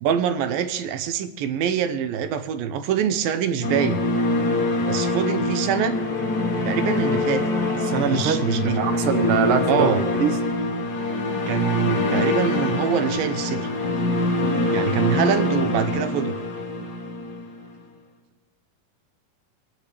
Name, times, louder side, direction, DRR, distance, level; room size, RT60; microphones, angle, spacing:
voice 1, 0.0-4.0 4.9-6.0 6.6-7.4 8.1-8.8 9.7-10.0 11.5-13.7 14.7-16.3, right 8 dB, 90° right, 10 dB, 2.6 m, -24 dB
sound 1, 3.6-17.7, left 2 dB, 55° left, 1.0 m, -24 dB
voice 2, 7.8-8.5 8.8-10.3, right 5 dB, 65° right, 6 dB, 1.4 m, -23 dB
24.0 x 10.5 x 3.3 m, 1.0 s
omnidirectional pair, 4.0 m